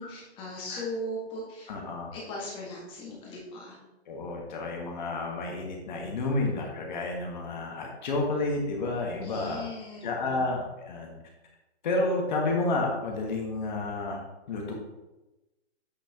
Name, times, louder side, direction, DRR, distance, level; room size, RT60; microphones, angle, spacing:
voice 1, 0.0-1.7 2.1-3.8 9.2-10.4, left 1 dB, 15° left, -4 dB, 1.7 m, -38 dB
voice 2, 1.7-2.1 4.1-9.7 10.0-11.1 11.8-14.2 14.5-14.7, left 2 dB, 40° left, 0 dB, 1.5 m, -30 dB
8.3 x 6.0 x 3.0 m, 1.0 s
hypercardioid pair, 165°, 34 cm